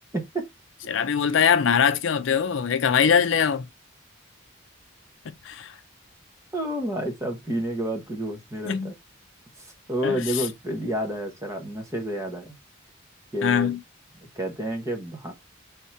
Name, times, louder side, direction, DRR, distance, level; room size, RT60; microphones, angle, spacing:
voice 1, 0.1-0.4 6.5-8.9 9.6-12.5 13.3-13.7 14.3-15.3, right 1 dB, 15° right, 0.9 m, -30 dB
voice 2, 0.9-3.6 5.3-5.8 8.6-8.9 10.0-10.5 13.4-13.8, left 7 dB, 70° left, 0.4 m, -22 dB
3.6 x 2.9 x 4.4 m
head